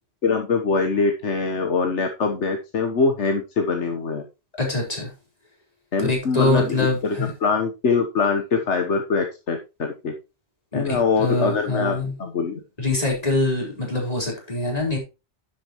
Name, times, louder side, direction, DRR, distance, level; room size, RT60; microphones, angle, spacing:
voice 1, 0.2-4.2 5.9-10.1 10.7-12.6, left 4 dB, 75° left, 4 dB, 1.4 m, -23 dB
voice 2, 4.6-5.1 6.0-7.3 10.7-12.1 12.8-15.0, left 2 dB, 35° left, -2 dB, 4.2 m, -24 dB
10.5 x 8.4 x 3.0 m, 0.28 s
omnidirectional pair, 1.2 m